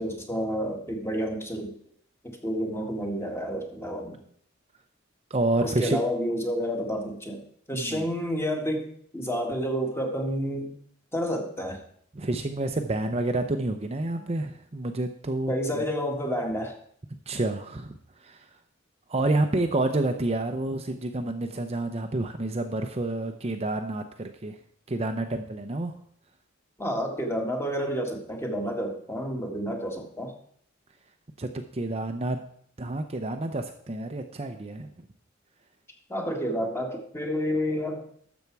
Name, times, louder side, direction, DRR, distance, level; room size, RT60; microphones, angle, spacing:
voice 1, 0.0-1.7 2.2-4.2 5.6-7.4 7.7-10.7 11.1-11.8 15.5-16.8 26.8-30.3 36.1-38.0, equal, 15° left, 2 dB, 1.9 m, -30 dB
voice 2, 5.3-6.0 7.7-8.1 12.1-15.8 17.3-17.9 18.2-18.4 19.1-24.6 24.9-25.9 31.4-32.4 32.8-34.9, right 2 dB, 30° right, 5 dB, 0.7 m, -29 dB
12.5 x 7.2 x 4.7 m, 0.62 s
head